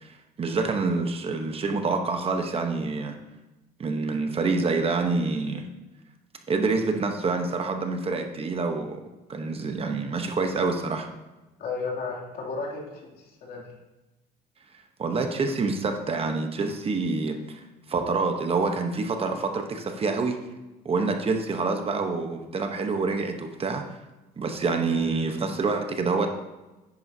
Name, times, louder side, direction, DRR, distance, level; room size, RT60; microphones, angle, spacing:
voice 1, 0.0-3.2 3.8-5.6 6.5-9.0 9.3-11.1 15.0-20.4 20.8-23.8 24.4-26.3, right 4 dB, 35° right, 5 dB, 1.0 m, -27 dB
voice 2, 11.6-13.7, left 4 dB, 60° left, -2 dB, 2.8 m, -34 dB
10.5 x 9.2 x 2.8 m, 1.1 s
cardioid pair, 110°, 17 cm